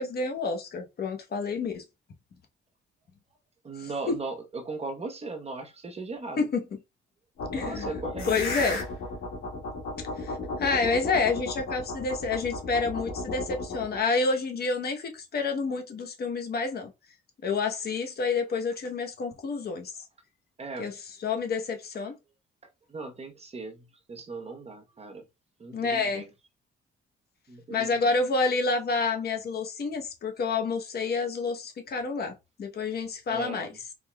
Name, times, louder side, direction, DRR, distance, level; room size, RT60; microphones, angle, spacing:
voice 1, 0.0-1.8 3.8-4.2 6.4-6.6 7.5-7.9 8.3-8.8 10.1-16.9 17.4-19.9 20.8-20.9 21.2-22.1 25.7-26.2 27.7-33.7, left 4 dB, 50° left, 0.9 m, -29 dB
voice 2, 3.6-6.5 7.5-8.8 20.6-20.9 22.9-25.3 25.6-26.3 27.5-28.1 33.3-33.8, right 3 dB, 30° right, 1.0 m, -38 dB
sound 1, 7.4-14.0, left 2 dB, 85° left, 1.8 m, -34 dB
4.0 x 3.7 x 2.2 m
cardioid pair, 90°, 20 cm